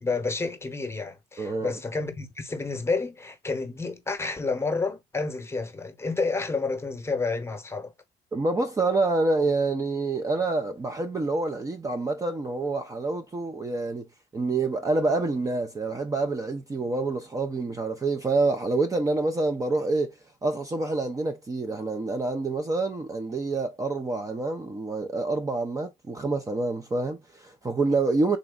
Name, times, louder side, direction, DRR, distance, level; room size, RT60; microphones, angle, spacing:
voice 1, 0.0-7.9, left 3 dB, 15° left, 1.0 m, -30 dB
voice 2, 1.4-1.7 8.3-14.1 14.3-20.1 20.4-28.4, right 3 dB, 20° right, 0.5 m, -27 dB
3.8 x 3.1 x 2.3 m
cardioid pair, 110°, 17 cm